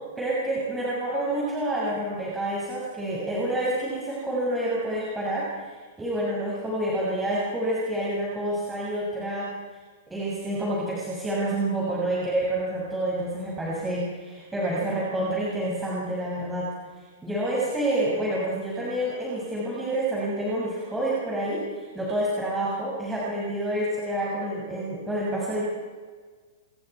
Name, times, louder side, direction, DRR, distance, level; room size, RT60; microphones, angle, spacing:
voice 1, 0.2-9.5 10.1-16.7 17.2-25.7, right 1 dB, 10° right, -6 dB, 7.0 m, -28 dB
29.0 x 22.0 x 4.8 m, 1.5 s
hypercardioid pair, 120°, 0 cm